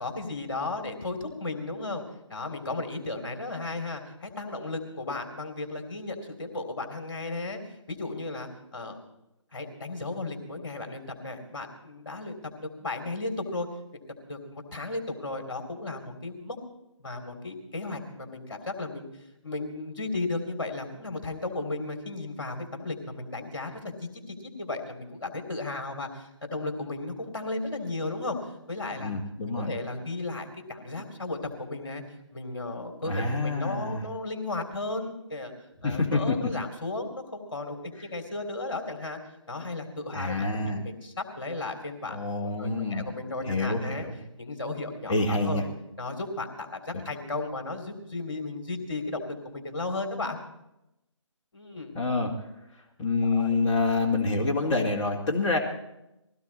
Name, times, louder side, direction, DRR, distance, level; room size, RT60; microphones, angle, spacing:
voice 1, 0.0-2.0 2.3-7.6 7.9-9.0 9.5-13.7 13.9-16.6 17.0-19.1 19.4-28.4 28.7-29.1 29.5-32.0 32.3-35.5 35.8-39.2 39.5-42.3 42.6-44.0 44.4-45.6 46.0-50.4 51.5-52.0 53.2-53.6, left 2 dB, 45° left, 4 dB, 3.3 m, -35 dB
voice 2, 29.0-29.7 33.0-34.0 35.8-36.3 40.1-40.8 42.1-43.1 43.5-44.2 45.1-45.6 52.0-52.3 53.0-55.6, left 3 dB, 15° left, -2 dB, 2.0 m, -27 dB
21.0 x 16.5 x 4.2 m, 0.88 s
figure-of-eight pair, 150°, 16 cm